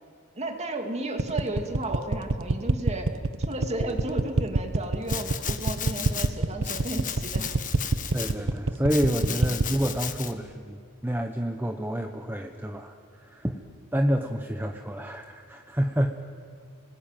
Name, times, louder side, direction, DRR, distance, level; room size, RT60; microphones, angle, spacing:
voice 1, 0.3-7.5 9.2-9.5, right 2 dB, 30° right, 4 dB, 2.5 m, -34 dB
sound 1, 1.2-9.7, right 3 dB, 65° right, 0.9 m, -25 dB
Domestic sounds home sounds, 5.1-6.3 6.6-8.3 8.9-10.3, left 9 dB, 35° left, 1.5 m, -35 dB
voice 2, 8.1-10.8 11.0-13.6 13.9-16.2, equal, 10° right, 4 dB, 1.1 m, -28 dB
30.0 x 20.5 x 9.1 m, 2.3 s
head